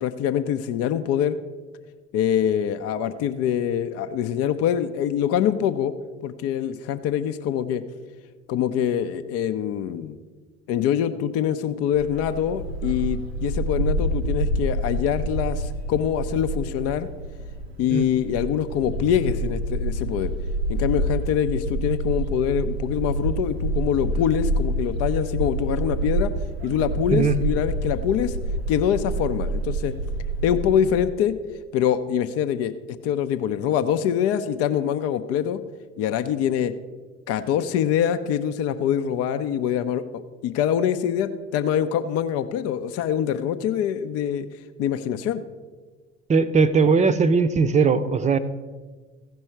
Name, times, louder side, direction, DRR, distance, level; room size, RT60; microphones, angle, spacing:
voice 1, 0.0-1.4 2.1-5.9 6.2-7.8 8.5-10.2 10.7-17.1 17.8-20.3 20.7-26.3 26.6-28.4 28.7-29.9 30.4-31.3 31.7-32.7 33.0-35.6 36.0-36.7 37.3-44.5 44.8-45.4, left 9 dB, 50° left, 10 dB, 0.6 m, -24 dB
Bark, 11.9-31.0, right 1 dB, 85° right, 0.7 m, -27 dB
voice 2, 46.3-48.4, right 5 dB, 25° right, 10 dB, 0.6 m, -19 dB
16.0 x 5.4 x 4.5 m, 1.4 s
figure-of-eight pair, 60°, 30 cm